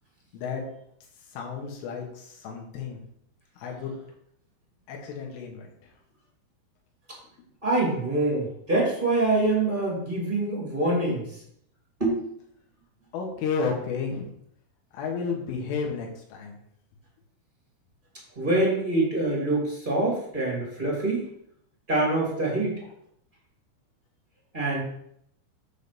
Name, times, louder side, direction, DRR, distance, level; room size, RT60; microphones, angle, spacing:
voice 1, 1.3-3.0 3.6-3.9 4.9-5.7 13.1-14.3 14.9-16.6, left 5 dB, 75° left, 0 dB, 3.7 m, -32 dB
voice 2, 7.6-11.2 12.0-12.2 18.3-21.2 21.9-22.7 24.5-24.8, right 2 dB, 30° right, -4 dB, 0.9 m, -25 dB
8.2 x 3.9 x 6.8 m, 0.71 s
omnidirectional pair, 5.9 m